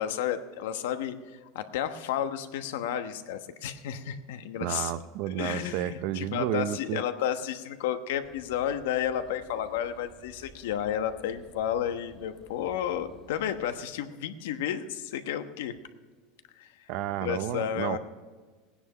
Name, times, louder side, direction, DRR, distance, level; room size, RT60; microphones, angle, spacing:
voice 1, 0.0-4.9 5.3-15.7 16.6-16.9 17.2-18.0, left 10 dB, 85° left, 1.1 m, -32 dB
voice 2, 4.6-7.0 16.9-18.0, right 12 dB, 55° right, 0.6 m, -31 dB
sound 1, 8.2-13.8, right 1 dB, 5° right, 1.7 m, -55 dB
17.0 x 10.0 x 5.6 m
supercardioid pair, 155°, 0 cm